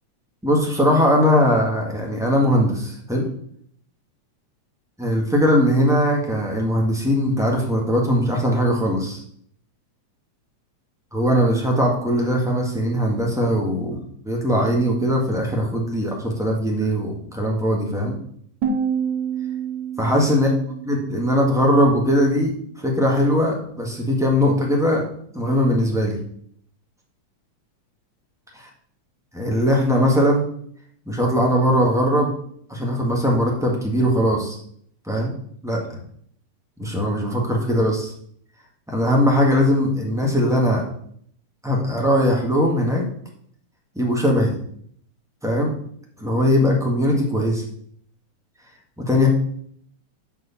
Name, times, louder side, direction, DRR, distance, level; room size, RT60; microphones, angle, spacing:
voice 1, 0.4-3.3 5.0-9.2 11.1-18.2 20.0-20.5 20.8-25.1 25.3-26.2 29.3-30.4 31.1-32.3 32.7-34.6 35.1-35.3 35.6-35.8 36.8-38.1 38.9-40.8 41.6-43.0 43.9-44.6 45.4-45.7 46.2-47.6 49.0-49.3, equal, ahead, -2 dB, 0.7 m, -20 dB
sound 1, 18.6-21.6, right 6 dB, 75° right, 2.7 m, -28 dB
7.9 x 4.8 x 7.1 m, 0.64 s
omnidirectional pair, 3.4 m